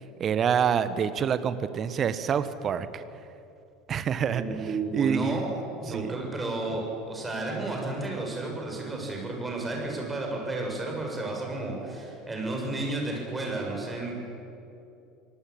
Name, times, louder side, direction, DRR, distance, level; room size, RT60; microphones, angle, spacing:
voice 1, 0.2-3.0 3.9-4.4 4.9-5.4 5.9-6.1, right 7 dB, 35° right, 13 dB, 1.3 m, -26 dB
voice 2, 4.3-5.4 5.8-14.1, right 2 dB, 15° right, 0 dB, 7.5 m, -32 dB
26.5 x 19.0 x 8.9 m, 2.7 s
figure-of-eight pair, 70°, 0 cm